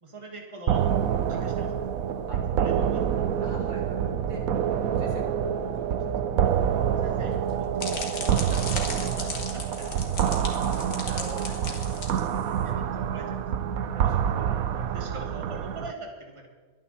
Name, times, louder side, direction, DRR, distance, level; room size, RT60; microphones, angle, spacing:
voice 1, 0.0-1.7 2.3-3.2 6.9-7.7 8.1-10.0 11.1-11.3 12.1-13.4 14.7-16.5, right 1 dB, 20° right, 1 dB, 2.3 m, -43 dB
sound 1, 0.7-15.9, right 9 dB, 70° right, 1.2 m, -27 dB
voice 2, 3.4-4.4 5.0-5.3 5.6-5.9 6.2-6.3 10.6-10.8 11.0-11.8 13.9-14.7, right 1 dB, 85° right, -4 dB, 5.5 m, -42 dB
sound 2, 7.3-12.7, left 3 dB, 70° left, 2.5 m, -37 dB
23.0 x 9.3 x 4.3 m, 1.4 s
omnidirectional pair, 1.6 m